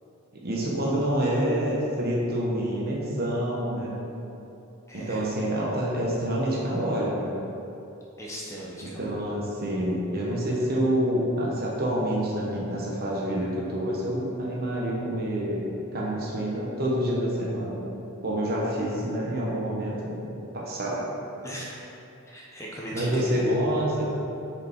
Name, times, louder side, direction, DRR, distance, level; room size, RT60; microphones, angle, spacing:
voice 1, 0.4-4.0 4.9-7.4 9.0-17.8 18.2-20.1 20.5-21.0 22.9-24.0, equal, 45° right, -4 dB, 1.1 m, -27 dB
voice 2, 4.9-5.2 8.2-9.1 21.4-21.8 22.3-23.4, equal, 15° left, -5 dB, 0.9 m, -38 dB
6.6 x 5.0 x 4.4 m, 2.9 s
head